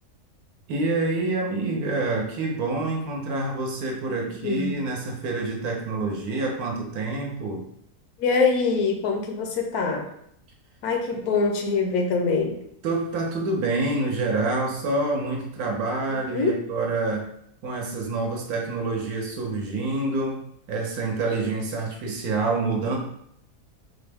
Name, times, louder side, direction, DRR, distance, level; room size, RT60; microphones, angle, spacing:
voice 1, 0.7-7.6 12.8-17.3 17.6-20.4 20.7-23.0, right 3 dB, 70° right, 0 dB, 1.2 m, -27 dB
voice 2, 4.4-4.7 8.2-10.1 10.8-12.6 16.3-16.6, left 4 dB, 75° left, 3 dB, 1.0 m, -24 dB
4.2 x 2.0 x 3.4 m, 0.71 s
omnidirectional pair, 1.7 m